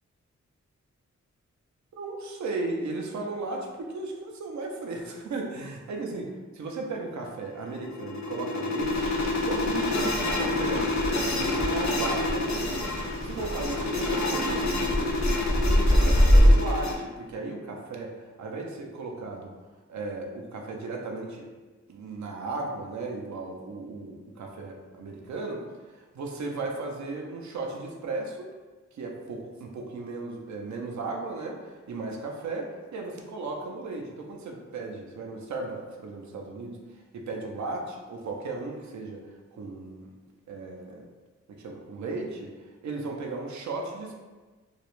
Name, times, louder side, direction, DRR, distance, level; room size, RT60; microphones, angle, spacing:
voice 1, 2.0-6.3 6.6-12.9 13.2-15.2 15.5-19.5 19.9-21.5 21.9-28.5 28.9-40.1 40.5-41.0 41.5-42.5 42.8-44.1, right 3 dB, 75° right, 1 dB, 0.5 m, -36 dB
sound 1, 7.5-16.9, left 2 dB, 70° left, 0.4 m, -28 dB
Rain, 8.8-16.5, equal, 20° right, 0.5 m, -25 dB
2.3 x 2.0 x 2.9 m, 1.3 s
wide cardioid pair, 80°, 29 cm